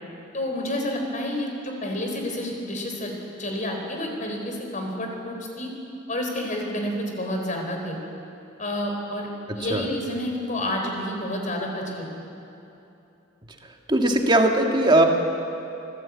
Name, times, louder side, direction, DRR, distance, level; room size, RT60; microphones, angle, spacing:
voice 1, 0.3-3.1 3.4-5.7 6.1-8.0 8.6-9.3 9.5-12.0, left 1 dB, 40° left, 2 dB, 4.1 m, -29 dB
voice 2, 13.9-15.0, right 1 dB, 25° right, 3 dB, 1.8 m, -19 dB
24.5 x 16.0 x 8.5 m, 2.8 s
head